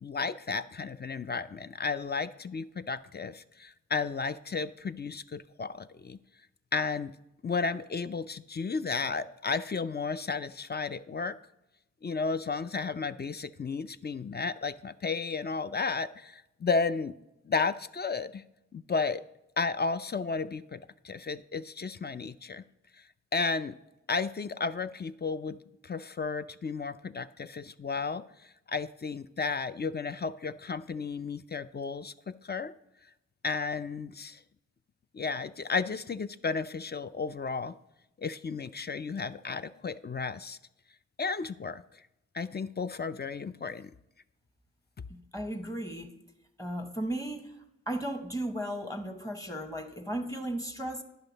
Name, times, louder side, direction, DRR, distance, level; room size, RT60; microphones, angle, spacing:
voice 1, 0.0-6.2 6.7-7.1 7.4-11.4 12.0-17.1 17.5-18.4 18.7-19.2 19.6-22.6 23.3-23.7 24.1-25.6 25.8-28.2 28.7-32.7 33.4-34.4 35.1-37.7 38.2-40.6 41.2-41.8 42.3-43.9, left 4 dB, 35° left, 13 dB, 0.4 m, -33 dB
voice 2, 45.1-46.1 46.6-47.5 47.9-51.0, right 1 dB, 10° left, 6 dB, 1.0 m, -35 dB
10.5 x 5.7 x 4.0 m, 0.89 s
cardioid pair, 45°, 29 cm